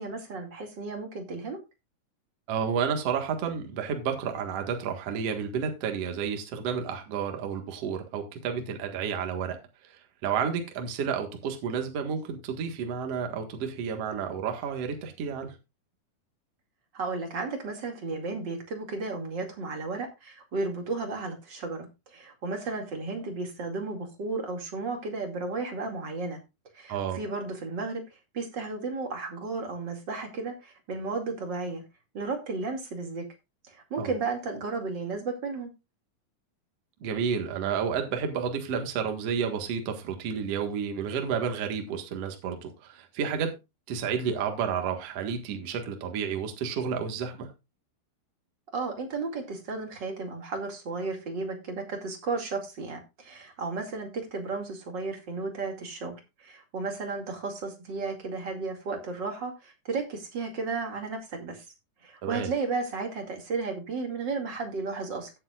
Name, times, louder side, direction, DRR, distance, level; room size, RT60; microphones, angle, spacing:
voice 1, 0.0-1.6 16.9-26.4 26.7-28.0 28.3-31.8 32.1-33.2 33.7-35.7 48.7-61.6 62.0-65.3, right 3 dB, 35° right, 2.3 m, -34 dB
voice 2, 2.5-9.6 9.8-10.0 10.2-15.5 26.9-27.2 34.0-34.1 37.0-43.5 43.9-47.5 62.2-62.5, right 7 dB, 50° right, 2.1 m, -31 dB
16.0 x 8.7 x 2.4 m
omnidirectional pair, 4.6 m